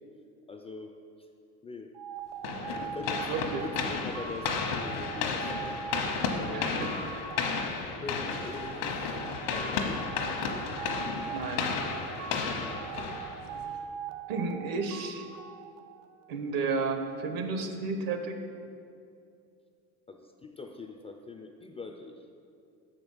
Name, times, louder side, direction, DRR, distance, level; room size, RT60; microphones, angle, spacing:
voice 1, 0.5-1.3 1.6-1.9 2.9-5.8 6.1-7.0 8.0-9.2 9.5-10.1 12.6-13.2 20.1-22.3, left 3 dB, 15° left, 4 dB, 0.3 m, -43 dB
sound 1, 1.9-16.4, right 7 dB, 80° right, 0.6 m, -41 dB
sound 2, 2.4-13.7, left 5 dB, 80° left, 1.1 m, -33 dB
voice 2, 3.3-3.6 6.4-7.0 11.3-11.7 14.3-15.3 16.3-18.4, right 4 dB, 65° right, 6 dB, 1.0 m, -32 dB
6.5 x 5.2 x 6.2 m, 2.5 s
supercardioid pair, 105°, 39 cm